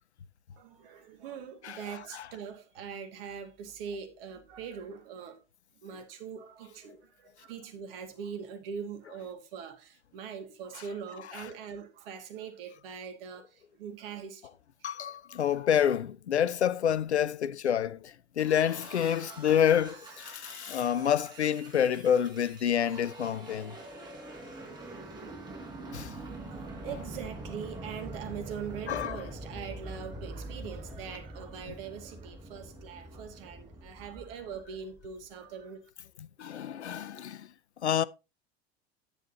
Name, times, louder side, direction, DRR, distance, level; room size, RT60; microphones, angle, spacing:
voice 1, 0.6-5.4 5.8-14.5 14.9-15.1 26.5-35.8, right 7 dB, 55° right, 1.9 m, -42 dB
voice 2, 14.8-23.8 25.9-26.1 28.9-29.2 36.4-37.5 37.8-38.0, left 9 dB, 80° left, 0.5 m, -28 dB
sound 1, 18.4-35.0, right 2 dB, 15° right, 4.4 m, -45 dB
9.8 x 9.2 x 2.8 m
figure-of-eight pair, 80°, 33 cm